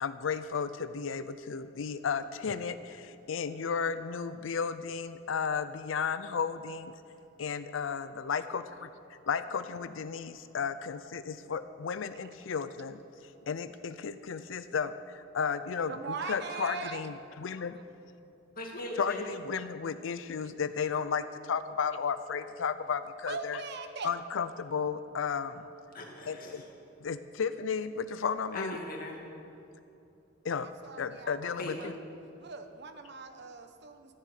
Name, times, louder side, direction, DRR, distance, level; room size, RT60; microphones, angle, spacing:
voice 1, 0.0-6.9 7.4-8.6 9.3-13.0 13.5-15.9 16.3-17.8 19.0-23.6 24.0-25.6 26.3-26.6 27.0-28.8 30.4-30.7 31.0-31.9, left 6 dB, 85° left, 12 dB, 0.5 m, -33 dB
voice 2, 15.9-17.1 17.7-17.8 23.3-24.1 30.6-32.0 32.4-34.1, right 4 dB, 60° right, 7 dB, 1.0 m, -41 dB
voice 3, 18.6-19.2 25.9-26.7 28.5-29.2 31.6-31.8, left 1 dB, 50° left, 0 dB, 2.2 m, -39 dB
13.5 x 7.3 x 9.4 m, 2.8 s
head